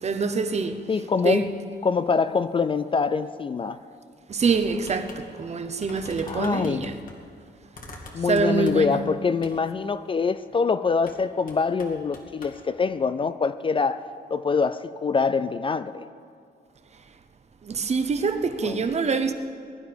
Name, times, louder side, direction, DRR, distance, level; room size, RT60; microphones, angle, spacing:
voice 1, 0.0-1.5 4.3-7.0 8.2-9.0 17.6-19.3, right 4 dB, 40° right, 0.8 m, -25 dB
voice 2, 0.9-1.5 1.8-3.8 6.3-7.0 8.1-16.1 18.6-18.8, left 5 dB, 30° left, 0.3 m, -25 dB
sound 1, 4.8-5.2 5.5-5.6 5.8-7.2 7.7-9.0 9.4-9.6 11.0-11.2 11.5-12.6, left 2 dB, 55° left, 2.2 m, -44 dB
22.0 x 11.5 x 5.2 m
wide cardioid pair, 170°, 18 cm